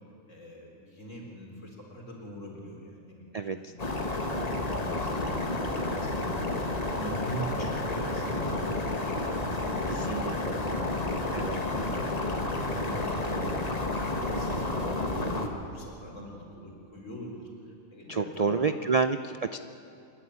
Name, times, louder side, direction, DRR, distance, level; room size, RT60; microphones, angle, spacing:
voice 1, 0.3-3.3 3.6-4.3 4.7-6.5 7.0-12.5 12.8-13.9 14.3-18.7, right 1 dB, 65° left, -1 dB, 4.3 m, -43 dB
voice 2, 3.3-3.7 4.3-4.6 10.1-10.6 11.3-11.6 18.1-19.6, right 5 dB, 60° right, 10 dB, 0.4 m, -29 dB
sound 1, 3.8-15.5, left 2 dB, 30° left, 1.6 m, -30 dB
27.0 x 11.0 x 10.0 m, 2.5 s
omnidirectional pair, 1.4 m